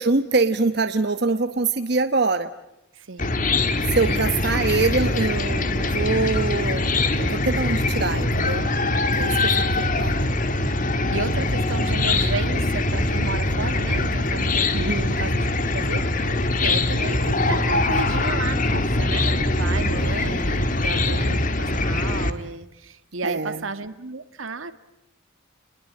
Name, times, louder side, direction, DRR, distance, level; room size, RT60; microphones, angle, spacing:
voice 1, 0.0-2.5 3.9-6.9 7.2-8.7 9.1-10.3 14.7-15.1 23.2-23.6, right 3 dB, 50° right, 9 dB, 1.0 m, -24 dB
voice 2, 2.9-3.4 3.7-4.2 4.7-4.8 10.5-10.7 11.1-24.7, right 3 dB, 80° right, 11 dB, 1.7 m, -33 dB
Chicken rooster / Cricket, 3.2-22.3, left 2 dB, 40° left, 1.7 m, -23 dB
30.0 x 21.5 x 8.6 m, 0.89 s
head